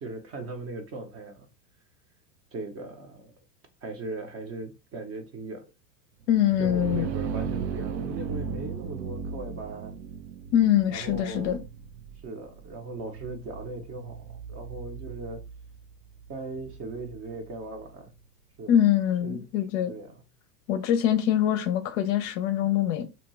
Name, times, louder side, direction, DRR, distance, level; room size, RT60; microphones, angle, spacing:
voice 1, 0.0-1.5 2.5-3.3 3.8-5.7 6.6-9.9 10.9-11.6 12.2-15.4 16.3-18.1 18.6-18.8 19.2-19.5 19.9-20.2, right 2 dB, 30° right, 0.6 m, -38 dB
voice 2, 6.3-7.1 10.5-11.6 18.7-19.9 20.7-23.1, left 10 dB, 50° left, 0.5 m, -24 dB
sound 1, 6.3-17.9, right 6 dB, 75° right, 0.6 m, -37 dB
2.7 x 2.2 x 3.0 m
hypercardioid pair, 105°, 49 cm